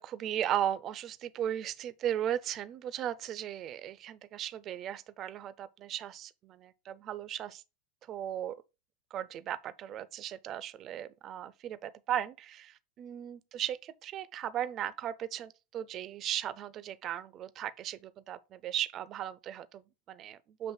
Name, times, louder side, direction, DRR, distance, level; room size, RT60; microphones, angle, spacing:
voice 1, 0.0-7.6 8.1-8.5 9.1-20.7, right 10 dB, 35° right, 0.5 m, -37 dB
7.1 x 3.1 x 4.3 m
figure-of-eight pair, 80°, 0 cm